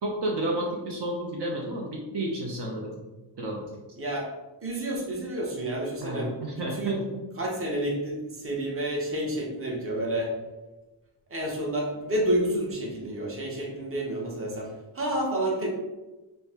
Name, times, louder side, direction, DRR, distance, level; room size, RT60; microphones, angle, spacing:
voice 1, 0.0-3.0 3.4-3.7 6.0-7.2, right 1 dB, 60° right, -1 dB, 0.8 m, -31 dB
voice 2, 4.0-4.3 4.6-6.3 6.7-7.0 7.4-10.3 11.3-15.7, right 1 dB, 30° right, -2 dB, 0.8 m, -29 dB
5.4 x 2.1 x 2.8 m, 1.1 s
wide cardioid pair, 115°, 47 cm